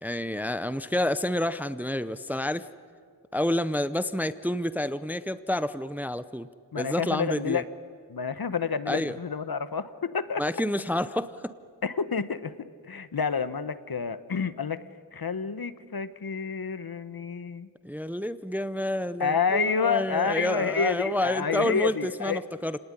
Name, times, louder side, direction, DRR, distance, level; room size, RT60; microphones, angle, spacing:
voice 1, 0.0-2.7 3.3-6.5 6.8-7.6 8.9-9.2 10.4-11.5 17.8-22.8, left 1 dB, 5° right, 14 dB, 0.6 m, -29 dB
voice 2, 6.7-7.6 8.1-10.4 11.8-12.5 12.8-14.8 15.1-17.7 19.2-22.4, left 5 dB, 55° left, 13 dB, 1.1 m, -29 dB
29.5 x 19.0 x 9.8 m, 2.1 s
wide cardioid pair, 90°, 44 cm